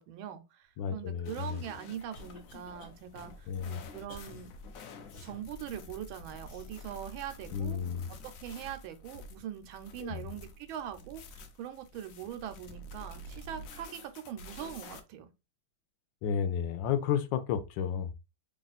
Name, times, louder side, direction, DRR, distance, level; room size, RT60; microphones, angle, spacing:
voice 1, 0.0-4.5 5.2-7.8 8.2-15.3, right 10 dB, 85° right, 1.4 m, -42 dB
voice 2, 0.8-1.6 3.5-3.8 7.5-8.0 10.0-10.2 16.2-18.2, left 8 dB, 75° left, 1.2 m, -32 dB
sound 1, 1.2-15.0, left 2 dB, 90° left, 0.7 m, -49 dB
Cough, 1.9-2.9 3.4-3.5 4.1-4.3 5.1-5.3 6.4-6.7, left 1 dB, 60° left, 1.8 m, -52 dB
3.4 x 2.4 x 4.0 m
omnidirectional pair, 2.2 m